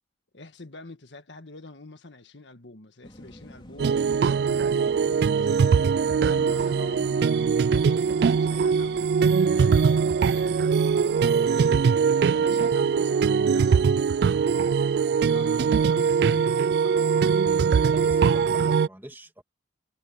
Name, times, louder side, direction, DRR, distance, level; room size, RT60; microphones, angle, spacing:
voice 1, 0.3-9.1 9.5-11.2 12.3-17.6, left 2 dB, 75° left, 1.7 m, -46 dB
sound 1, 3.0-11.4, equal, 25° left, 3.3 m, -47 dB
sound 2, 3.8-18.9, right 6 dB, 60° right, 0.3 m, -22 dB
voice 2, 17.9-19.4, right 1 dB, 10° right, 2.5 m, -43 dB
head